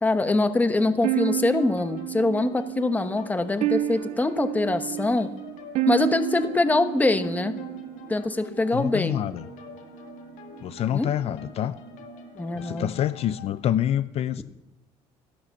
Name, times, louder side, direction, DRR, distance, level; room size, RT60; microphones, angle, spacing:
voice 1, 0.0-5.3 5.9-7.6 8.1-9.2 10.9-11.1 12.4-12.9, left 2 dB, 15° left, 10 dB, 1.1 m, -24 dB
sound 1, 0.8-13.6, left 8 dB, 85° left, 1.8 m, -47 dB
sound 2, 1.0-8.2, right 18 dB, 65° right, 0.5 m, -30 dB
sound 3, 4.7-13.8, right 4 dB, 85° right, 2.3 m, -47 dB
voice 2, 8.7-9.4 10.6-11.7 12.5-14.4, left 11 dB, 55° left, 14 dB, 0.5 m, -27 dB
13.5 x 11.0 x 7.1 m, 0.97 s
cardioid pair, 125°, 12 cm